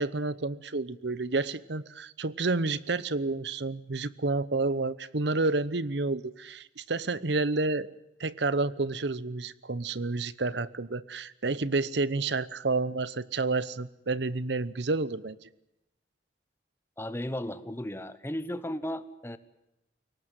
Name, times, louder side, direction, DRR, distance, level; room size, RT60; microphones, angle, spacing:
voice 1, 0.0-7.9 8.2-15.5, right 3 dB, 70° right, 18 dB, 0.9 m, -30 dB
voice 2, 17.0-19.4, left 1 dB, 15° left, 13 dB, 1.0 m, -35 dB
23.0 x 18.5 x 9.2 m, 0.89 s
head